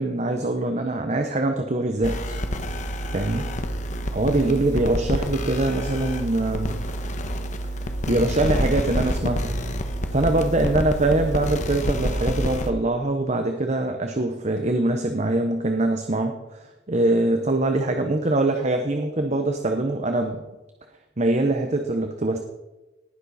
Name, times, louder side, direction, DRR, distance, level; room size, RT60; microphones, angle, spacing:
voice 1, 0.0-2.3 3.1-3.5 4.1-6.8 7.7-9.6 10.1-20.4 21.2-22.4, right 2 dB, 35° right, 5 dB, 0.9 m, -23 dB
sound 1, 2.0-12.7, equal, 40° left, 1.2 m, -28 dB
18.5 x 10.5 x 4.2 m, 1.1 s
head